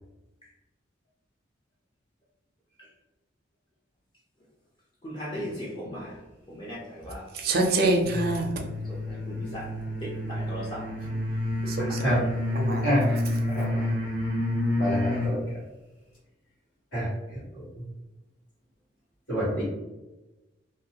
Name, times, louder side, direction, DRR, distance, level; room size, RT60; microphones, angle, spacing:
voice 1, 5.0-6.2 6.5-7.3 8.9-9.7 10.0-10.9 13.6-13.8, equal, 25° left, 0.5 m, -38 dB
voice 2, 7.3-8.5 11.6-12.2 12.5-13.2, right 2 dB, 55° right, 0.5 m, -26 dB
sound 1, 8.0-15.4, left 1 dB, 45° left, 1.0 m, -29 dB
voice 3, 11.8-12.2 12.8-13.0 13.5-13.9 14.8-15.4 16.9-17.1 19.3-19.6, equal, 90° left, 1.5 m, -27 dB
2.6 x 2.2 x 2.8 m
head